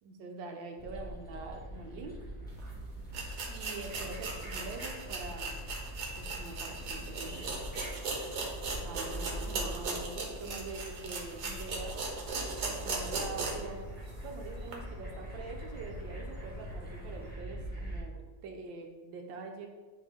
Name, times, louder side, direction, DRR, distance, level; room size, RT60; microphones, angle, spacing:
voice 1, 0.0-2.3 3.5-5.5 6.2-7.5 8.8-12.0 12.6-13.9 14.2-19.7, right 3 dB, 85° right, 3 dB, 1.6 m, -44 dB
sound 1, 0.8-18.0, equal, 5° left, 1.3 m, -43 dB
sound 2, 2.6-2.7 3.1-13.7 14.1-14.2 14.7-14.8, right 3 dB, 65° right, 1.5 m, -38 dB
sound 3, 11.5-17.3, right 1 dB, 15° right, 1.9 m, -50 dB
9.6 x 3.3 x 3.6 m, 1.4 s
omnidirectional pair, 2.0 m